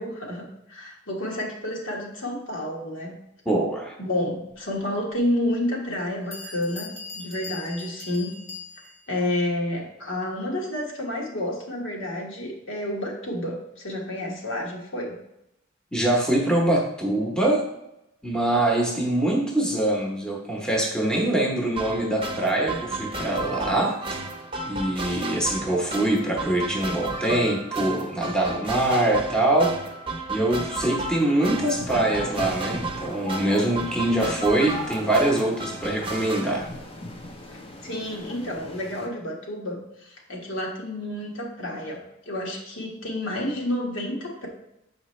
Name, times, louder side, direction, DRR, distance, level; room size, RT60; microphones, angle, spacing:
voice 1, 0.0-3.2 4.0-8.3 9.1-15.2 37.5-44.5, left 1 dB, 70° left, -1 dB, 1.5 m, -30 dB
voice 2, 3.5-3.9 15.9-17.6 18.2-24.0 24.6-29.8 30.3-36.7, right 1 dB, 5° left, -1 dB, 1.0 m, -24 dB
Bell, 5.1-5.2 5.9-6.0 6.3-9.1, left 4 dB, 50° left, 1.4 m, -40 dB
sound 1, 21.8-36.5, right 2 dB, 25° right, 0.8 m, -33 dB
sound 2, 31.5-39.1, left 1 dB, 25° left, 0.8 m, -39 dB
7.3 x 5.0 x 3.1 m, 0.84 s
head